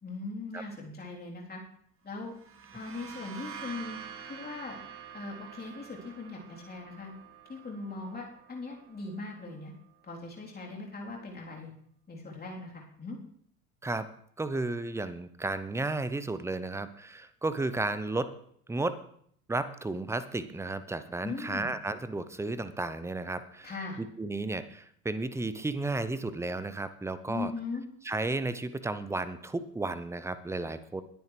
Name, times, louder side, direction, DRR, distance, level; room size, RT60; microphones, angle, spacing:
voice 1, 0.0-1.6 2.0-2.3 2.7-4.0 4.3-4.8 5.1-7.1 7.5-9.7 10.0-11.7 12.1-13.2 21.2-21.7 23.6-24.0 27.3-27.9, left 3 dB, 20° left, -2 dB, 3.5 m, -39 dB
sound 1, 2.2-9.8, right 8 dB, 25° right, 2.2 m, -47 dB
voice 2, 14.4-18.3 18.7-19.0 19.5-27.5 28.0-31.0, right 2 dB, 5° right, 13 dB, 0.7 m, -33 dB
21.0 x 9.7 x 3.3 m, 0.64 s
figure-of-eight pair, 75°, 49 cm